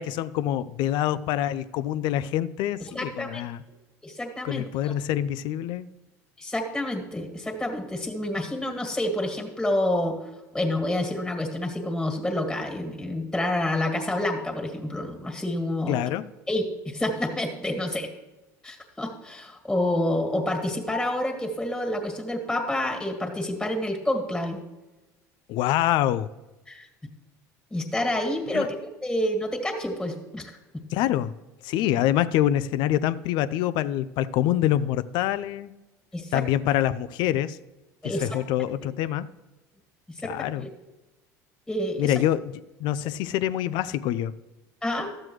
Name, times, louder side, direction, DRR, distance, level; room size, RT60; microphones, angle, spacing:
voice 1, 0.0-3.6 4.4-5.9 15.9-16.3 25.5-26.3 28.5-28.7 30.9-31.3 31.6-35.7 36.3-37.6 38.0-39.3 40.2-40.7 42.0-42.4 42.8-44.3, left 12 dB, 65° left, 16 dB, 0.5 m, -25 dB
voice 2, 2.9-3.4 4.0-5.0 6.4-10.2 10.5-16.0 16.5-18.1 18.6-24.6 26.7-26.9 27.7-28.8 29.0-30.5 36.1-36.4 38.0-38.4 40.2-40.7 41.7-42.1 44.8-45.1, left 1 dB, 10° left, 4 dB, 2.0 m, -28 dB
12.5 x 7.5 x 3.1 m, 1.1 s
supercardioid pair, 80°, 8 cm